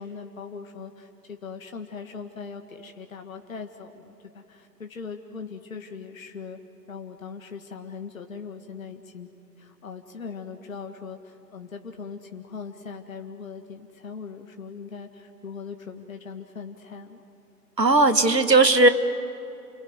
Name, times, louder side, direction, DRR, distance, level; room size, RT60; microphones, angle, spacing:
voice 1, 0.0-6.6 6.9-9.3 9.6-17.2, left 5 dB, 55° left, 5 dB, 1.8 m, -40 dB
voice 2, 17.8-18.9, right 2 dB, 90° right, 10 dB, 1.9 m, -17 dB
29.0 x 21.0 x 9.6 m, 2.9 s
figure-of-eight pair, 145°, 49 cm